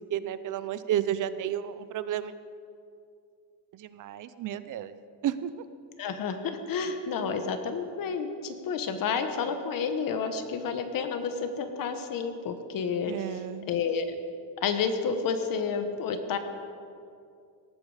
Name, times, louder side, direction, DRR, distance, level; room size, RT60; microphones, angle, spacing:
voice 1, 0.1-2.3 3.7-5.0 5.2-5.5 13.1-13.7, right 11 dB, 45° right, 14 dB, 0.7 m, -32 dB
voice 2, 6.0-14.1 14.6-16.4, left 5 dB, 45° left, 8 dB, 1.3 m, -30 dB
18.0 x 13.5 x 5.0 m, 2.4 s
cardioid pair, 155°, 46 cm